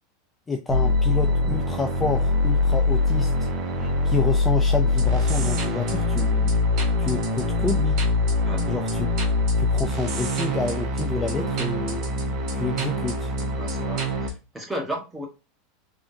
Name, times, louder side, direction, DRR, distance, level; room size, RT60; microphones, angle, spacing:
voice 1, 0.5-3.5 4.0-6.5 7.0-8.0 8.7-9.1 9.6-12.0 12.5-13.3, left 4 dB, 15° left, 0.4 m, -29 dB
sound 1, 0.7-14.3, left 2 dB, 50° right, 1.3 m, -23 dB
voice 2, 8.4-8.7 13.5-15.3, equal, 10° right, 1.5 m, -34 dB
3.6 x 3.4 x 2.7 m
hypercardioid pair, 110°, 0 cm